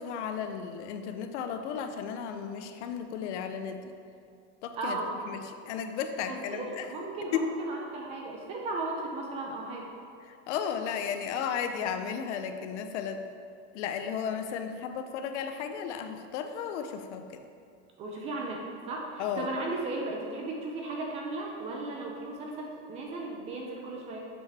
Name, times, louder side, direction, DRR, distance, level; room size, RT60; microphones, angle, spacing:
voice 1, 0.0-3.9 4.6-6.9 7.3-7.5 10.3-13.2 13.7-17.4 19.2-19.5, left 7 dB, 85° left, 7 dB, 0.7 m, -34 dB
voice 2, 4.8-5.1 6.3-9.9 18.0-24.2, right 2 dB, 20° right, 0 dB, 0.4 m, -36 dB
7.0 x 5.4 x 3.4 m, 2.4 s
supercardioid pair, 180°, 34 cm